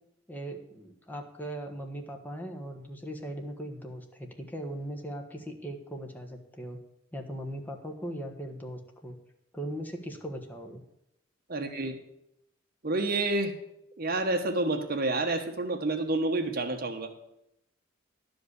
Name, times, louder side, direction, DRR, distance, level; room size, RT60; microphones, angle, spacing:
voice 1, 0.3-6.8 7.1-9.2 9.5-10.8, right 1 dB, 10° left, 2 dB, 1.3 m, -39 dB
voice 2, 11.5-12.0 12.8-13.5 14.0-17.1, right 2 dB, 50° right, 5 dB, 1.3 m, -29 dB
11.5 x 5.2 x 8.1 m, 0.80 s
head